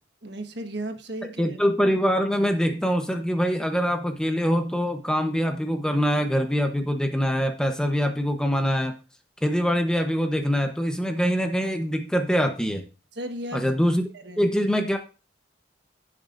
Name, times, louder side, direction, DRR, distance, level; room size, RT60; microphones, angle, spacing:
voice 1, 0.2-1.6 13.1-13.7 14.1-14.4, right 1 dB, 60° right, 1.4 m, -35 dB
voice 2, 1.4-8.9 9.4-12.8 13.5-14.0 14.4-15.0, equal, 5° left, 0.9 m, -24 dB
16.0 x 7.4 x 2.6 m
head